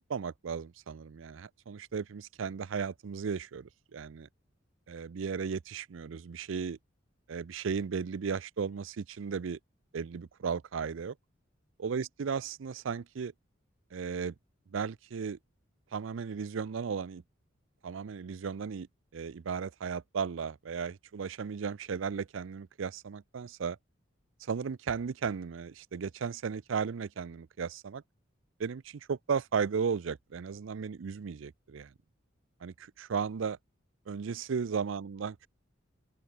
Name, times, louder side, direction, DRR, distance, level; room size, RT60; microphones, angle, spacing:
voice 1, 0.0-4.3 4.9-6.8 7.3-9.6 9.9-11.1 11.8-13.3 13.9-14.3 14.7-15.4 15.9-17.2 17.8-18.9 19.1-23.8 24.4-28.0 28.6-31.9 32.6-33.6 34.1-35.5, right 6 dB, 70° right, 0.5 m, -35 dB
open air
head